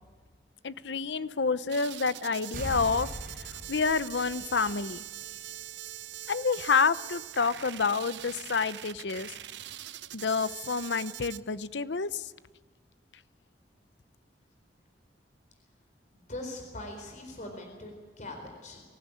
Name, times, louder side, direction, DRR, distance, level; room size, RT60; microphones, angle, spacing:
voice 1, 0.6-3.1 3.7-5.0 6.3-9.4 10.1-12.3, left 5 dB, 75° left, 15 dB, 0.8 m, -28 dB
sound 1, 1.7-11.4, right 13 dB, 75° right, 0.7 m, -43 dB
sound 2, 2.5-5.1 5.5-5.6, equal, 55° right, 5.4 m, -40 dB
voice 2, 16.1-18.8, left 1 dB, 45° left, 4 dB, 4.2 m, -41 dB
24.0 x 16.0 x 9.8 m, 1.5 s
head